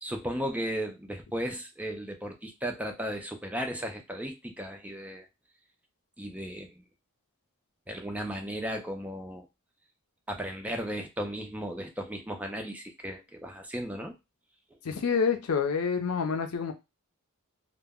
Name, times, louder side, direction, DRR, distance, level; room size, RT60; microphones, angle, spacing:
voice 1, 0.0-5.3 6.2-6.8 7.9-9.5 10.3-14.1, equal, 5° right, 3 dB, 0.4 m, -35 dB
voice 2, 14.8-16.7, left 6 dB, 80° left, 5 dB, 0.5 m, -27 dB
2.1 x 2.1 x 3.5 m, 0.23 s
head